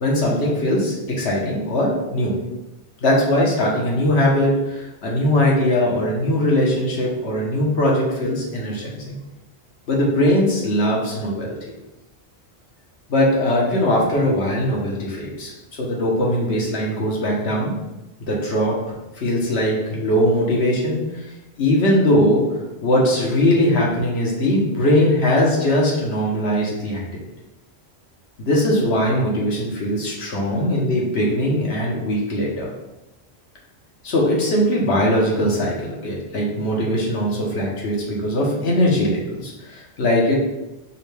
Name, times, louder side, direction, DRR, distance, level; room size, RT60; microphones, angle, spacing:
voice 1, 0.0-2.3 3.0-9.2 9.9-11.6 13.1-15.5 15.8-17.7 18.3-18.8 19.2-21.0 21.6-22.4 22.8-27.0 28.4-32.7 34.0-40.3, left 1 dB, 80° left, -3 dB, 1.2 m, -20 dB
5.3 x 2.2 x 3.2 m, 0.99 s
omnidirectional pair, 1.1 m